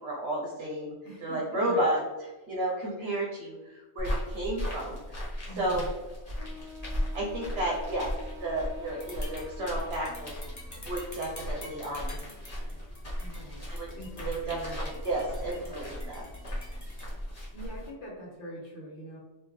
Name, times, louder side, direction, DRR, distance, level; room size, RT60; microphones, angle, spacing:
voice 1, 0.0-0.9 1.2-2.0 2.5-5.0 5.6-5.9 6.9-8.1 8.4-10.3 10.8-12.2 13.7-13.9 14.3-14.8 15.0-16.2, right 1 dB, 65° right, -3 dB, 1.0 m, -32 dB
voice 2, 1.0-1.9 5.5-5.9 13.2-13.7 13.9-15.0 17.5-19.2, equal, 80° left, -5 dB, 1.2 m, -43 dB
sound 1, 4.0-17.9, equal, 35° left, 1.3 m, -37 dB
Wind instrument woodwind instrument, 6.4-10.5, left 5 dB, 50° right, 0.6 m, -48 dB
sound 2, 7.8-17.0, left 1 dB, 20° left, 0.7 m, -49 dB
3.5 x 2.8 x 3.1 m, 1.2 s
omnidirectional pair, 1.2 m